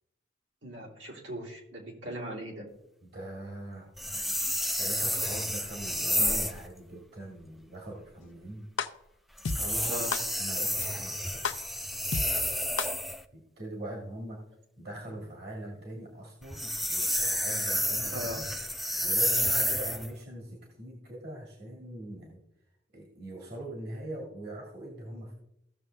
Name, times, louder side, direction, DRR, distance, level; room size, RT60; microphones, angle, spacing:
voice 1, 0.6-2.6 9.8-10.1 18.1-18.4, equal, 80° right, -2 dB, 2.9 m, -39 dB
voice 2, 3.0-3.9 4.4-8.7 9.5-10.0 10.4-11.5 13.3-14.4 14.8-18.5 19.0-22.4 22.9-25.3, right 1 dB, 55° right, -1 dB, 1.8 m, -42 dB
sound 1, 4.0-6.6 9.4-13.2 16.4-20.1, equal, ahead, 0.3 m, -30 dB
sound 2, 8.8-8.9 9.4-9.6 10.1-10.2 10.8-10.9 11.4-11.5 12.1-12.2 12.8-12.9, left 5 dB, 85° left, 0.6 m, -29 dB
15.5 x 6.5 x 3.3 m, 0.82 s
head